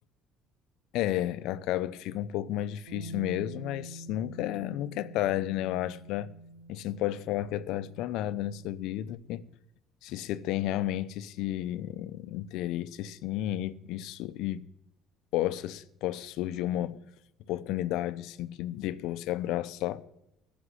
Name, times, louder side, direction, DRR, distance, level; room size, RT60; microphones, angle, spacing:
voice 1, 0.9-6.3 6.7-9.5 10.0-14.6 15.3-17.0 17.5-20.0, left 13 dB, 75° left, 0.7 m, -32 dB
Bass guitar, 2.9-9.1, right 2 dB, 75° right, 2.8 m, -47 dB
14.5 x 6.1 x 9.7 m
cardioid pair, 115°, 0 cm